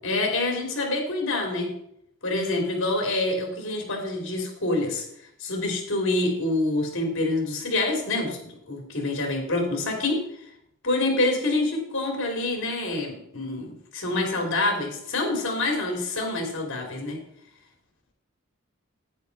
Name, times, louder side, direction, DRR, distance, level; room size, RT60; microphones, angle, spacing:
voice 1, 0.0-1.7 2.2-5.0 5.4-8.4 8.7-10.2 10.8-17.2, left 2 dB, 60° left, 2 dB, 3.2 m, -26 dB
10.5 x 9.3 x 4.1 m, 0.73 s
head